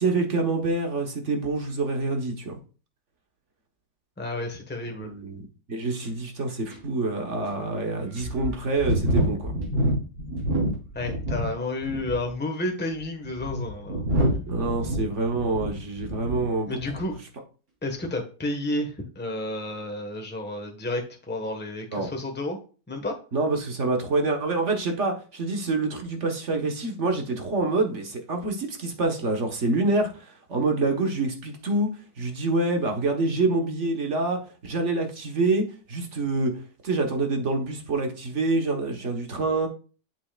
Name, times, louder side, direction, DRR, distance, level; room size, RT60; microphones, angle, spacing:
voice 1, 0.0-2.6 5.0-9.5 14.5-16.8 21.9-22.1 23.3-36.5 36.8-39.7, right 3 dB, 50° right, 1.6 m, -26 dB
voice 2, 4.2-5.1 10.9-14.1 16.7-17.1 17.8-22.6 22.9-23.1, left 2 dB, 5° left, 1.3 m, -31 dB
sound 1, 6.0-6.1 6.7-6.8 7.4-7.5 8.2-11.5 11.8-12.3 13.0-16.5 16.8-17.1, equal, 80° right, 4.1 m, -27 dB
8.3 x 7.6 x 2.4 m
omnidirectional pair, 1.6 m